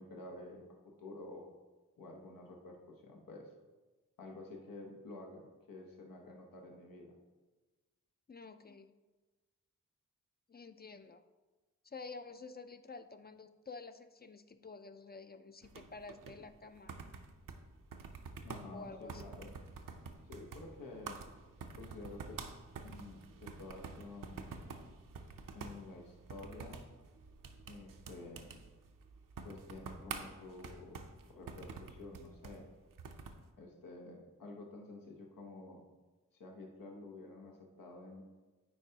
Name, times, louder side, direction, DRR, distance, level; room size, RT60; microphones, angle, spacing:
voice 1, 0.0-1.4 2.0-3.5 4.2-7.1 18.4-19.5 20.2-21.2 21.8-22.4 22.8-24.5 25.5-26.8 27.7-28.5 29.4-31.0 31.3-32.7 33.6-35.8 36.3-38.2, left 2 dB, 90° left, 0 dB, 0.9 m, -50 dB
voice 2, 8.3-8.9 10.5-11.2 11.8-17.0 18.7-19.2, left 4 dB, 30° left, 10 dB, 0.4 m, -50 dB
sound 1, 15.6-33.5, right 4 dB, 75° right, 0.6 m, -49 dB
9.0 x 4.5 x 2.8 m, 1.2 s
cardioid pair, 50°, 33 cm